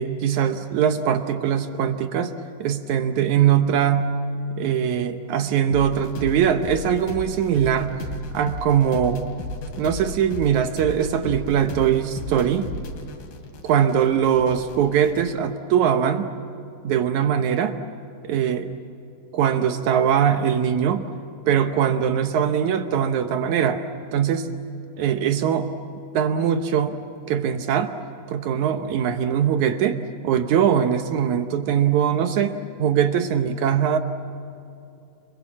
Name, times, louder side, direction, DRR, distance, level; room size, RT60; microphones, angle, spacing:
voice 1, 0.0-2.3 2.6-4.1 4.6-7.9 8.3-9.2 9.8-12.7 13.6-16.3 16.8-17.8 18.2-18.7 19.3-21.1 21.5-23.8 24.1-24.5 25.0-25.7 26.1-27.0 27.3-27.9 28.3-30.0 30.2-34.0, right 8 dB, 70° right, 8 dB, 1.9 m, -21 dB
sound 1, 5.7-15.3, left 2 dB, 75° left, 4.3 m, -35 dB
30.0 x 21.5 x 7.3 m, 2.6 s
omnidirectional pair, 4.4 m